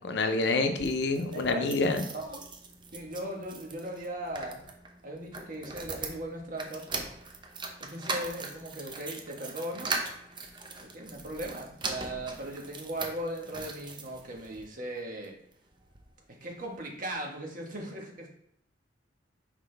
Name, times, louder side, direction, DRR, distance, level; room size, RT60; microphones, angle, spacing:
voice 1, 0.0-2.0, left 3 dB, 65° left, 7 dB, 0.7 m, -27 dB
sound 1, 0.6-14.7 15.2-16.1 16.4-16.5 16.7-16.8, right 3 dB, 25° right, 0.7 m, -40 dB
voice 2, 1.3-1.8 2.1-2.4 2.9-4.6 5.0-6.8 7.8-9.9 10.8-15.3 16.4-18.3, right 1 dB, 50° right, 1 dB, 1.4 m, -38 dB
5.8 x 4.8 x 3.4 m, 0.71 s
head